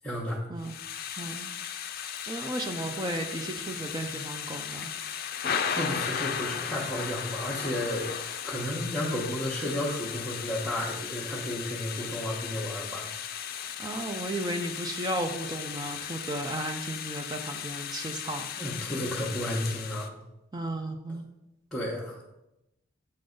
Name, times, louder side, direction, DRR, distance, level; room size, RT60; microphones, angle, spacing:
voice 1, 0.0-0.5 5.7-8.1 8.4-13.1 18.6-20.1 21.7-22.3, left 1 dB, ahead, -8 dB, 1.2 m, -32 dB
Thunder / Rain, 0.6-20.1, left 8 dB, 45° left, 0.5 m, -36 dB
voice 2, 1.2-1.5 2.3-4.9 13.8-18.5 20.5-21.3, right 1 dB, 20° right, 4 dB, 0.5 m, -34 dB
8.6 x 3.8 x 5.2 m, 0.90 s
head